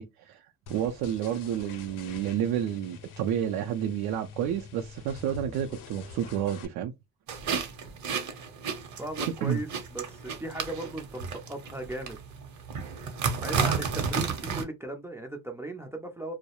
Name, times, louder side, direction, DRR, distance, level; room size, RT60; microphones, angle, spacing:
voice 1, 0.0-6.9 9.4-9.6, right 10 dB, 80° right, 0.5 m, -30 dB
sound 1, 0.7-6.7, left 6 dB, 60° left, 0.6 m, -45 dB
sound 2, 7.3-14.6, right 6 dB, 50° right, 0.8 m, -32 dB
voice 2, 9.0-12.2 13.4-16.3, right 1 dB, 10° right, 0.3 m, -37 dB
2.3 x 2.0 x 2.9 m
cardioid pair, 130°, 36 cm